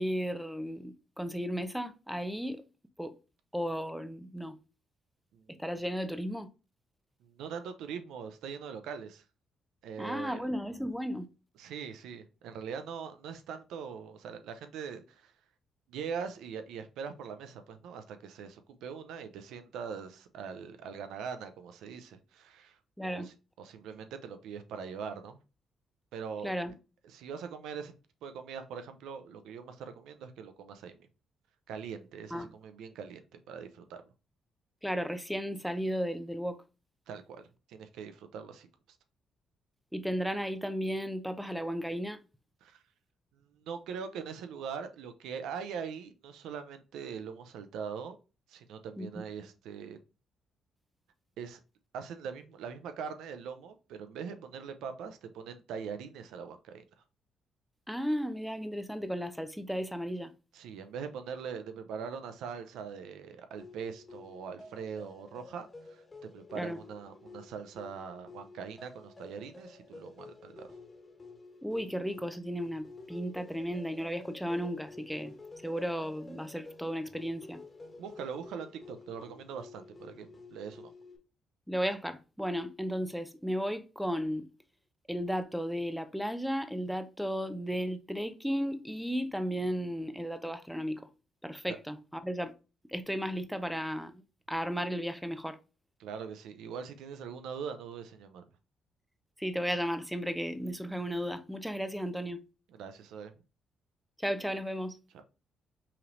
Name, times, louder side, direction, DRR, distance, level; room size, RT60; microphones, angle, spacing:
voice 1, 0.0-2.6 3.0-3.1 3.5-4.6 5.6-6.5 10.0-11.3 23.0-23.3 26.4-26.7 32.3-32.5 34.8-36.6 39.9-42.2 49.0-49.1 57.9-60.3 66.5-66.8 71.6-75.3 75.6-77.6 81.7-84.5 85.1-91.0 91.4-92.5 92.9-94.2 94.5-95.6 99.4-102.4 104.2-105.0, equal, ahead, 0.6 m, -34 dB
voice 2, 5.3-5.6 7.2-9.2 9.8-10.5 11.6-15.3 15.9-25.4 26.1-26.5 27.0-27.9 28.2-31.0 31.7-34.0 37.1-38.7 42.6-42.8 43.4-48.2 48.5-50.0 51.4-51.6 51.9-56.8 60.5-70.7 78.0-80.9 96.0-98.5 102.7-103.3 105.1-105.2, right 6 dB, 85° right, 0.6 m, -42 dB
sound 1, 63.6-81.2, left 3 dB, 25° left, 1.4 m, -51 dB
5.7 x 3.2 x 2.6 m
cardioid pair, 90°, 0 cm